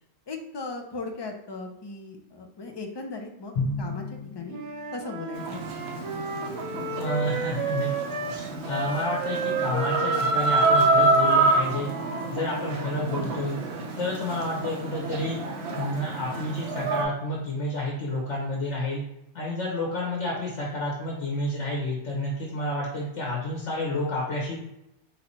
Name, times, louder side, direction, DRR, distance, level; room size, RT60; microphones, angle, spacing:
voice 1, 0.3-3.5 3.8-4.6 4.9-5.6, left 3 dB, 30° left, 2 dB, 0.5 m, -37 dB
Drum, 3.6-5.3, left 2 dB, 75° left, 1.4 m, -32 dB
Wind instrument woodwind instrument, 4.5-8.4 8.7-12.9, right 4 dB, 45° right, 0.4 m, -33 dB
Chicken rooster, 5.3-17.0, right 2 dB, 65° right, 1.0 m, -27 dB
voice 2, 7.0-7.9 8.6-11.9 12.3-13.6 14.0-15.4 15.7-19.0 19.3-24.6, left 1 dB, 90° left, -3 dB, 1.4 m, -30 dB
4.0 x 2.9 x 4.2 m, 0.83 s
omnidirectional pair, 1.2 m